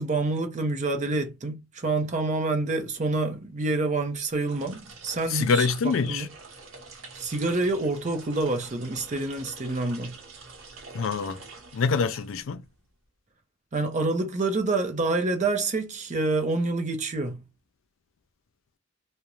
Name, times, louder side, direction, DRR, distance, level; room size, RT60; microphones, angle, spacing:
voice 1, 0.0-6.3 7.2-10.2 13.7-17.4, right 2 dB, 40° right, 0.6 m, -27 dB
sound 1, 4.4-12.7, right 4 dB, 85° right, 0.8 m, -46 dB
voice 2, 5.3-6.3 10.9-11.4 11.7-12.6, left 5 dB, 75° left, 0.4 m, -25 dB
2.4 x 2.1 x 2.9 m
head